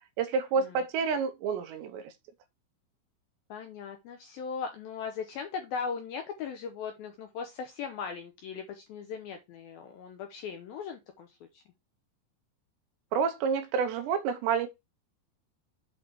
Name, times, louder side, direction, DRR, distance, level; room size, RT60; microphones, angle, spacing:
voice 1, 0.2-2.1 13.1-14.7, right 6 dB, 80° right, 3.0 m, -29 dB
voice 2, 3.5-11.6, left 6 dB, 75° left, 2.3 m, -38 dB
7.9 x 4.2 x 4.5 m
omnidirectional pair, 5.3 m